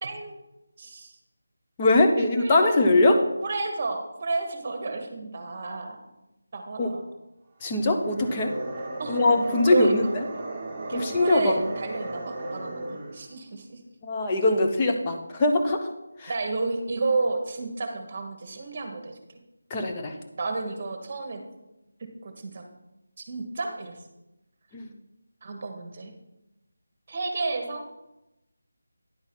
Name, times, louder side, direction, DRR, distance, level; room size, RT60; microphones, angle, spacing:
voice 1, 0.0-0.4 0.8-1.1 2.2-2.7 3.4-6.0 6.5-7.0 9.0-9.2 9.7-9.9 10.9-13.8 16.3-19.2 20.4-21.4 22.0-22.6 23.2-24.0 25.4-26.1 27.1-27.9, right 3 dB, 35° right, 5 dB, 1.3 m, -31 dB
voice 2, 1.8-3.2 6.8-6.9 7.6-8.5 9.1-10.0 10.9-11.6 14.0-15.9 16.2-16.3 19.7-20.1 24.7-24.9, left 2 dB, 20° left, 2 dB, 0.9 m, -22 dB
sound 1, 8.0-13.3, right 2 dB, 10° right, 1.7 m, -35 dB
10.0 x 4.0 x 6.0 m, 0.94 s
figure-of-eight pair, 165°, 0 cm